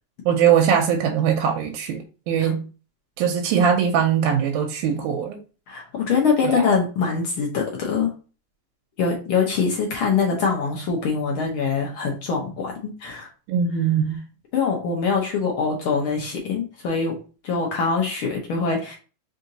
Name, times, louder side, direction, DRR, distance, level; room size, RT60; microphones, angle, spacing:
voice 1, 0.3-2.7 3.2-5.4 6.4-6.6 13.5-14.2, right 8 dB, 85° right, 2.1 m, -21 dB
voice 2, 5.7-8.1 9.0-13.3 14.5-17.2 17.4-19.0, left 5 dB, 70° left, 1.3 m, -23 dB
5.0 x 2.9 x 2.7 m
omnidirectional pair, 3.5 m